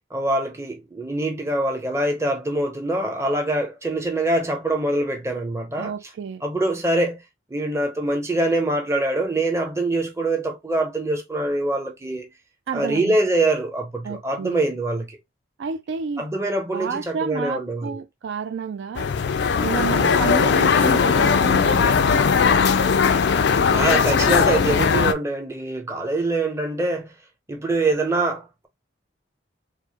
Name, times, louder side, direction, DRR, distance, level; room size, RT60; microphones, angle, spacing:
voice 1, 0.1-5.9 6.4-7.2 7.5-12.3 12.7-15.2 16.2-18.0 19.9-20.2 23.5-27.1 27.5-28.7, right 2 dB, 15° right, 0.7 m, -24 dB
voice 2, 5.8-6.4 12.7-13.2 14.0-14.6 15.6-16.3 16.7-19.1 19.6-22.3, right 6 dB, 65° right, 0.3 m, -30 dB
sound 1, 18.9-25.1, left 6 dB, 60° left, 0.3 m, -19 dB
4.5 x 2.1 x 2.8 m
head